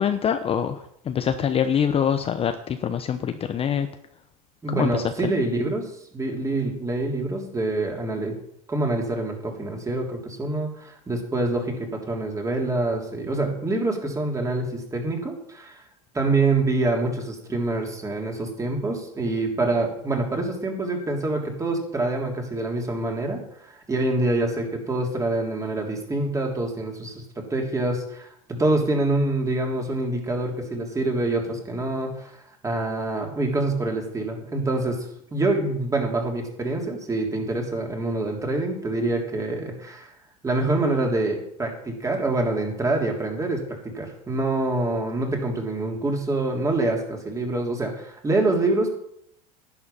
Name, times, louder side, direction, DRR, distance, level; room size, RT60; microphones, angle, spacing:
voice 1, 0.0-3.9 4.7-5.1, left 8 dB, 30° left, 9 dB, 0.8 m, -24 dB
voice 2, 4.6-8.3 8.7-15.8 16.1-32.3 32.6-35.0 35.3-40.1 40.4-48.9, right 2 dB, 15° right, 2 dB, 3.2 m, -26 dB
11.5 x 9.7 x 5.7 m, 0.72 s
supercardioid pair, 110°, 20 cm